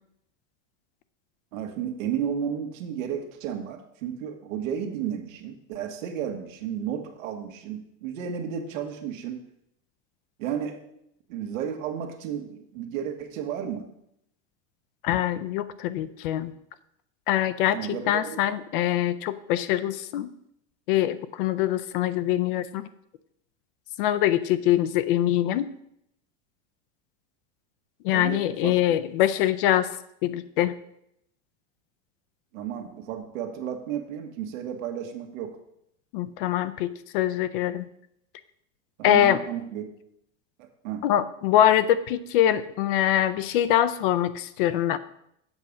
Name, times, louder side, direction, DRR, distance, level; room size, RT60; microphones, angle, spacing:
voice 1, 1.5-9.4 10.4-10.8 11.3-13.9 17.7-18.3 28.1-29.0 32.5-35.6 39.0-39.9 40.6-41.1, right 8 dB, 85° right, 5 dB, 1.7 m, -33 dB
voice 2, 15.0-16.5 17.3-17.8 18.1-20.3 20.9-22.8 24.0-25.7 28.0-29.9 30.2-30.8 36.1-37.9 39.0-39.4 41.0-45.0, left 12 dB, 45° left, 13 dB, 0.5 m, -23 dB
8.0 x 5.2 x 7.2 m, 0.76 s
supercardioid pair, 175°, 39 cm